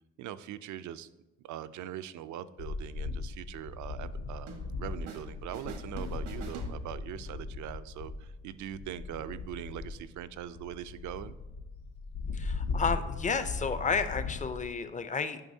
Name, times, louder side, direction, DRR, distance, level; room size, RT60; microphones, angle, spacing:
voice 1, 0.2-1.1 1.4-11.3, right 11 dB, 75° right, 14 dB, 0.4 m, -42 dB
sound 1, 2.6-14.7, left 4 dB, 75° left, 0.7 m, -38 dB
sound 2, 4.5-5.3 5.5-7.3, right 4 dB, 90° right, 1.1 m, -45 dB
voice 2, 12.3-15.4, left 5 dB, 25° left, 11 dB, 0.5 m, -31 dB
9.1 x 5.4 x 2.7 m, 1.1 s
cardioid pair, 90°, 30 cm